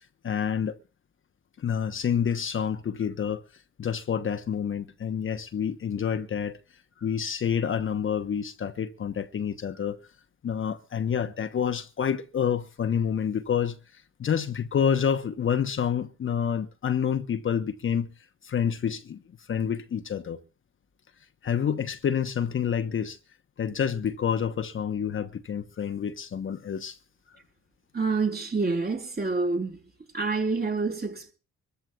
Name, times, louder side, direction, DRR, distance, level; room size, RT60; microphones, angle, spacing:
voice 1, 0.2-0.8 1.6-3.4 3.8-6.6 7.0-10.0 10.4-18.1 18.4-19.2 19.5-20.4 21.4-23.2 23.6-27.0, left 8 dB, 40° left, 1.0 m, -28 dB
voice 2, 27.9-29.8 30.1-31.3, right 4 dB, 30° right, 4.1 m, -27 dB
25.5 x 14.0 x 2.4 m
cardioid pair, 90°, 31 cm